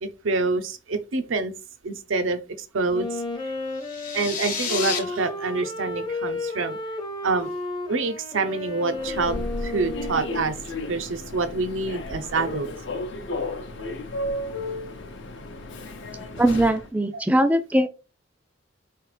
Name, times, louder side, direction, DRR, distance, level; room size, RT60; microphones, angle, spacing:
voice 1, 0.0-1.5 1.8-2.4 2.7-3.1 4.1-6.8 7.2-7.5 7.9-10.5 10.9-12.7, right 3 dB, 85° right, 0.6 m, -26 dB
Wind instrument woodwind instrument, 2.9-10.6, left 2 dB, 25° left, 0.7 m, -33 dB
sound 1, 3.7-5.0, left 6 dB, 45° left, 1.0 m, -30 dB
Human voice / Subway metro underground, 8.9-16.9, left 2 dB, 65° left, 0.7 m, -33 dB
voice 2, 16.4-17.9, right 1 dB, 10° right, 0.3 m, -20 dB
4.5 x 3.3 x 3.2 m
head